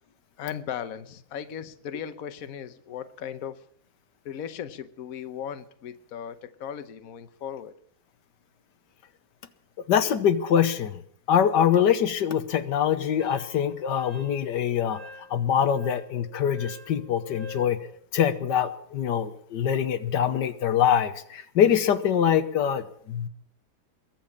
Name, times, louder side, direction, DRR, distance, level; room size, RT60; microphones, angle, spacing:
voice 1, 0.4-3.6 4.2-7.7, left 8 dB, 60° left, 10 dB, 1.3 m, -37 dB
voice 2, 9.9-11.0 11.3-15.0 15.3-17.8 18.1-23.3, left 9 dB, 85° left, 10 dB, 1.6 m, -24 dB
Wind instrument woodwind instrument, 13.2-17.8, left 3 dB, 45° right, 5.4 m, -46 dB
22.0 x 7.5 x 8.7 m, 0.64 s
omnidirectional pair, 1.8 m